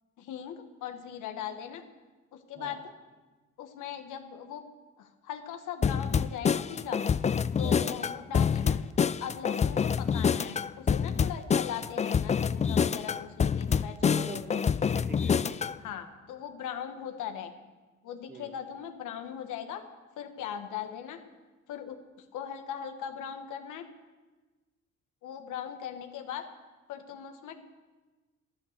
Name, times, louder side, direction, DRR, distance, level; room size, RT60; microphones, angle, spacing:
voice 1, 0.2-1.8 2.3-2.8 3.6-4.6 5.0-7.0 7.6-8.8 9.2-14.6 15.8-17.5 18.0-19.8 20.2-21.2 21.7-22.0 22.3-23.8 25.2-26.4 26.9-27.6, left 9 dB, 85° left, 6 dB, 1.3 m, -39 dB
sound 1, 5.8-15.8, left 6 dB, 25° left, 0.4 m, -27 dB
voice 2, 7.6-8.0 9.6-9.8 14.0-15.7 18.3-18.5, right 3 dB, 30° right, 5 dB, 1.8 m, -44 dB
12.0 x 12.0 x 6.6 m, 1.3 s
cardioid pair, 90°, 30 cm